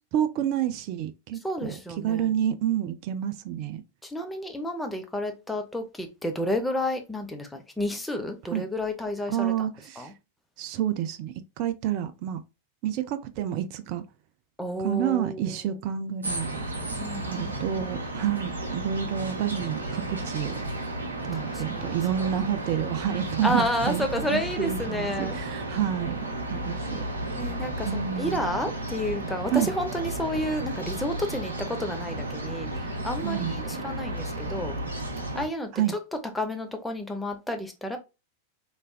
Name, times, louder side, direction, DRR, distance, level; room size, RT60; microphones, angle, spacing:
voice 1, 0.1-1.8 2.0-3.8 8.5-8.6 9.3-10.1 10.6-12.4 12.8-14.0 14.8-16.6 17.2-20.6 21.3-27.0 27.9-28.5 29.5-29.7 33.2-33.6 35.7-35.9, right 10 dB, 45° right, 0.4 m, -29 dB
voice 2, 1.4-2.3 4.0-9.5 10.0-10.1 14.6-15.6 17.0-17.9 21.3-22.3 23.4-25.4 27.4-34.8 35.3-36.0 36.3-38.0, left 1 dB, 5° left, 0.8 m, -31 dB
sound 1, 16.2-35.5, right 1 dB, 75° right, 0.8 m, -33 dB
3.4 x 3.1 x 2.2 m
figure-of-eight pair, 90°, 0 cm